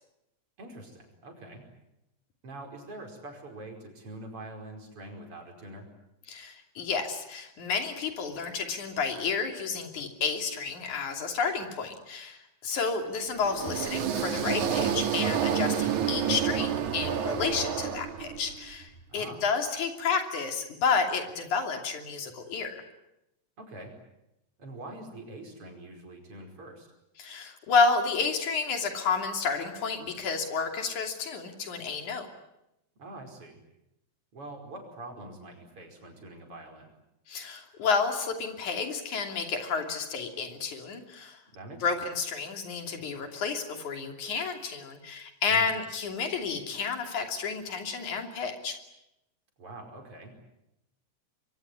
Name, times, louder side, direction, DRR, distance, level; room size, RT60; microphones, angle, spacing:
voice 1, 0.6-1.6 2.4-5.9 19.1-19.4 23.6-23.9 24.6-26.9 33.0-33.6 34.3-36.9 41.5-42.0 45.5-45.7 49.6-50.3, right 2 dB, 50° right, 3 dB, 6.0 m, -44 dB
voice 2, 6.3-22.8 27.2-32.3 37.3-41.4 41.8-48.8, left 5 dB, 85° left, 5 dB, 4.4 m, -30 dB
sound 1, 13.4-18.6, right 8 dB, 85° right, 3.3 m, -29 dB
25.0 x 23.0 x 9.7 m, 0.89 s
omnidirectional pair, 3.3 m